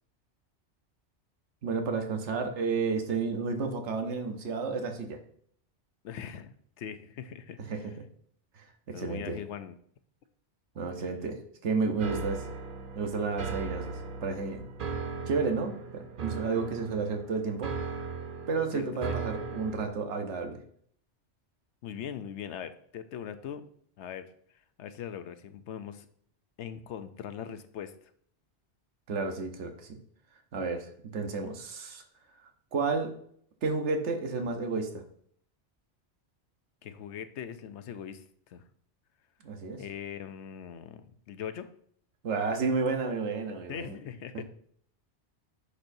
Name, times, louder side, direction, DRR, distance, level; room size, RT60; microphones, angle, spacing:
voice 1, 1.6-5.2 7.7-8.0 8.5-9.4 10.7-12.4 13.0-14.6 15.3-17.9 18.5-20.6 29.1-30.0 30.5-32.0 32.7-33.1 33.6-35.0 39.4-39.8 42.2-44.0, right 4 dB, 80° right, 5 dB, 1.2 m, -31 dB
voice 2, 6.0-7.9 8.9-9.7 18.7-19.2 21.8-23.7 24.0-24.2 24.8-26.1 26.6-27.9 36.8-38.6 39.8-41.7 43.7-44.4, left 8 dB, 80° left, 10 dB, 0.9 m, -41 dB
sound 1, 12.0-19.9, right 5 dB, 55° right, 0.8 m, -38 dB
10.0 x 4.3 x 2.6 m, 0.62 s
omnidirectional pair, 1.2 m